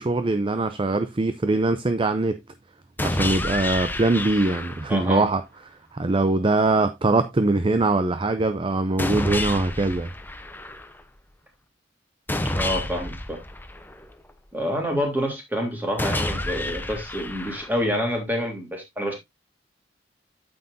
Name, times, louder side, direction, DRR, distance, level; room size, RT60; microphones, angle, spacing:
voice 1, 0.0-2.4 3.0-5.4 5.9-10.1, right 2 dB, 30° right, 0.5 m, -22 dB
sound 1, 3.0-5.0 9.0-11.0 12.3-14.3 16.0-18.0, left 1 dB, 10° left, 0.8 m, -29 dB
voice 2, 4.9-5.3 12.5-13.4 14.5-19.1, equal, 10° right, 3.2 m, -27 dB
9.0 x 7.9 x 2.6 m
head